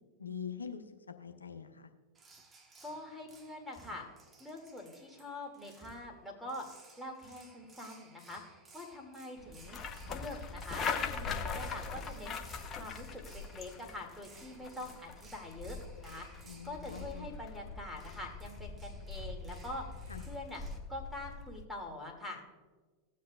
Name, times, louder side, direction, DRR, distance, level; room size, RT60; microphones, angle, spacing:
voice 1, 0.2-0.8 1.2-1.9 16.4-17.3 20.1-20.2, left 7 dB, 90° left, 6 dB, 0.7 m, -43 dB
sound 1, 2.1-20.8, right 3 dB, 25° right, 1.2 m, -60 dB
voice 2, 2.8-4.1 4.4-9.8 10.1-12.4 12.7-15.8 16.0-19.8 20.2-20.6 20.9-22.4, left 1 dB, ahead, 1 dB, 2.3 m, -45 dB
sound 2, 9.4-21.6, left 5 dB, 30° left, 0.9 m, -42 dB
16.5 x 7.6 x 2.4 m, 1.3 s
hypercardioid pair, 95°, 0 cm